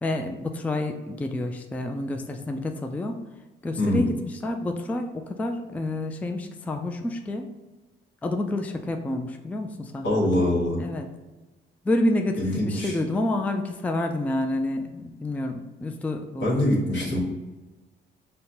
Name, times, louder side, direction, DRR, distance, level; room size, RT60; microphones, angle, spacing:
voice 1, 0.0-3.2 3.6-7.5 8.2-10.3 10.8-11.1 11.8-16.5, left 1 dB, 5° left, 5 dB, 0.3 m, -29 dB
voice 2, 10.0-10.8 12.4-12.9 16.4-17.2, left 1 dB, 65° left, -3 dB, 1.3 m, -23 dB
5.5 x 2.2 x 2.7 m, 1.2 s
cardioid pair, 90°, 20 cm